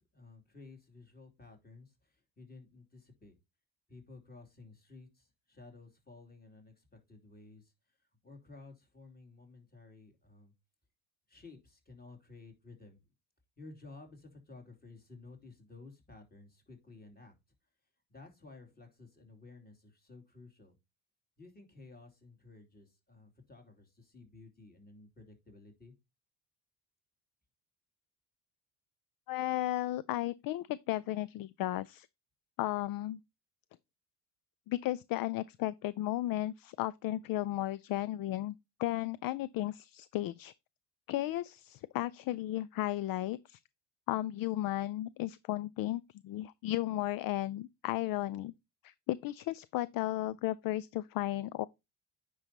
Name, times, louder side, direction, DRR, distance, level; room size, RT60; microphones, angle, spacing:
voice 1, 0.0-3.4 3.9-10.5 11.3-13.0 13.6-17.3 18.1-20.8 21.4-25.9, left 3 dB, 20° left, 3.0 m, -54 dB
voice 2, 29.3-32.1 32.6-33.2 34.7-40.5 41.1-43.6 44.1-48.5 48.8-51.7, left 15 dB, 45° left, 0.4 m, -34 dB
9.6 x 5.4 x 2.9 m
hypercardioid pair, 65°, 50 cm